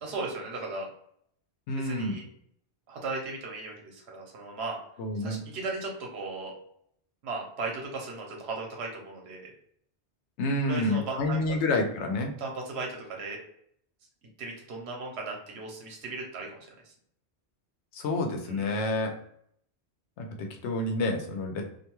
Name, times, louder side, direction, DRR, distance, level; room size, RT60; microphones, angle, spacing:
voice 1, 0.0-0.9 1.8-2.2 2.9-4.8 5.1-6.5 7.2-9.5 10.6-11.4 12.4-13.4 14.4-16.6 16.8-16.9 18.4-18.7, right 3 dB, 70° right, 0 dB, 1.0 m, -36 dB
voice 2, 1.7-2.2 5.0-5.4 10.4-12.3 17.9-19.1 20.2-21.6, left 2 dB, 85° left, 3 dB, 0.9 m, -29 dB
2.5 x 2.2 x 2.9 m, 0.67 s
omnidirectional pair, 1.1 m